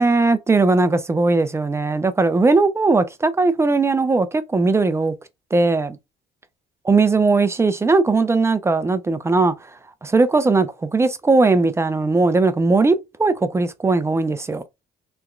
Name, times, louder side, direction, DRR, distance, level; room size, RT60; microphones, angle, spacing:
voice 1, 0.0-5.1 5.5-6.0 6.9-9.5 10.0-14.6, right 3 dB, 15° right, 0.4 m, -18 dB
3.3 x 3.0 x 2.4 m
cardioid pair, 110°, 17 cm